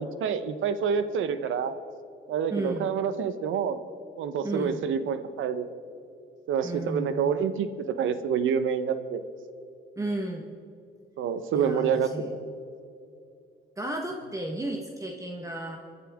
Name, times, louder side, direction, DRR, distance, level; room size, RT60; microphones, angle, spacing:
voice 1, 0.0-1.7 2.3-3.8 4.2-5.7 6.5-7.7 8.0-9.2 11.2-12.4, right 7 dB, 80° right, 11 dB, 1.0 m, -27 dB
voice 2, 2.5-2.9 4.4-4.8 6.6-7.3 10.0-10.5 11.5-12.3 13.8-15.8, right 1 dB, 15° right, 2 dB, 1.4 m, -33 dB
28.0 x 11.0 x 3.6 m, 2.6 s
cardioid pair, 90°, 20 cm